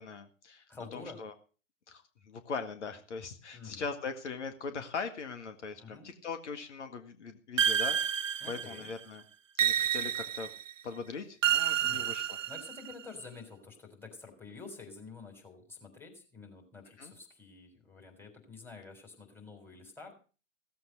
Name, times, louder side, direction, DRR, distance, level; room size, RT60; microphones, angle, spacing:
voice 1, 0.0-0.7 0.9-1.3 1.9-8.0 8.5-9.2 9.6-10.5 10.8-12.4 17.0-17.1, left 5 dB, 65° left, 8 dB, 1.9 m, -40 dB
voice 2, 0.7-1.2 3.5-3.9 5.8-6.1 8.4-8.9 9.8-10.0 11.8-12.1 12.5-20.1, left 4 dB, 5° left, 2 dB, 3.8 m, -49 dB
sound 1, 7.6-8.9 9.6-10.7 11.4-12.9, right 9 dB, 75° right, 0.6 m, -29 dB
16.0 x 7.8 x 6.6 m, 0.36 s
figure-of-eight pair, 115°, 38 cm